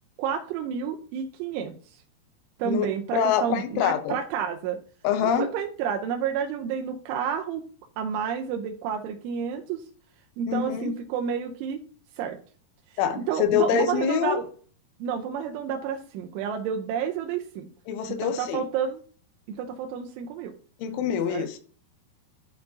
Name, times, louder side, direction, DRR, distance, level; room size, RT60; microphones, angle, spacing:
voice 1, 0.2-1.7 2.6-4.8 5.2-7.6 8.0-9.8 10.4-11.8 12.2-12.4 13.3-14.5 15.0-17.7 18.2-19.0 19.5-20.5 21.3-21.5, right 7 dB, 90° right, 3 dB, 3.1 m, -30 dB
voice 2, 3.1-4.2 5.0-5.5 10.5-10.9 13.0-14.4 17.9-18.7 20.8-21.6, left 8 dB, 90° left, 8 dB, 3.3 m, -25 dB
11.5 x 4.5 x 2.7 m, 0.43 s
omnidirectional pair, 5.4 m